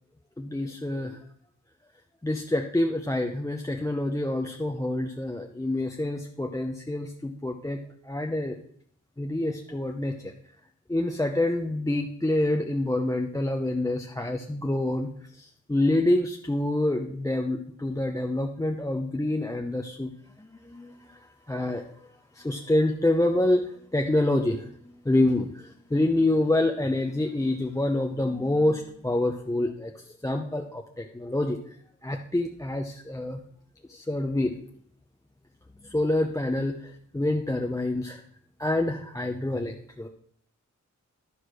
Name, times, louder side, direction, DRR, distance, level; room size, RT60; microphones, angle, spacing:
voice 1, 0.4-1.2 2.2-8.6 9.2-10.3 10.9-20.1 20.4-31.7 32.0-33.4 33.9-34.6 35.8-38.2 38.6-40.1, left 1 dB, 10° left, 2 dB, 0.7 m, -27 dB
11.5 x 4.9 x 6.2 m, 0.63 s
wide cardioid pair, 115°, 31 cm